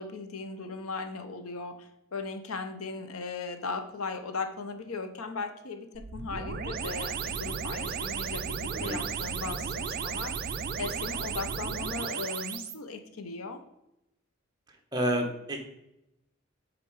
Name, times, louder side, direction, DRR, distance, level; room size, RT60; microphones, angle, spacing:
voice 1, 0.0-13.6, left 4 dB, 85° left, 8 dB, 0.8 m, -38 dB
sound 1, 5.9-12.7, right 6 dB, 45° right, 0.4 m, -34 dB
voice 2, 14.9-15.6, right 1 dB, 20° right, 2 dB, 1.1 m, -29 dB
7.7 x 4.1 x 4.7 m, 0.86 s
head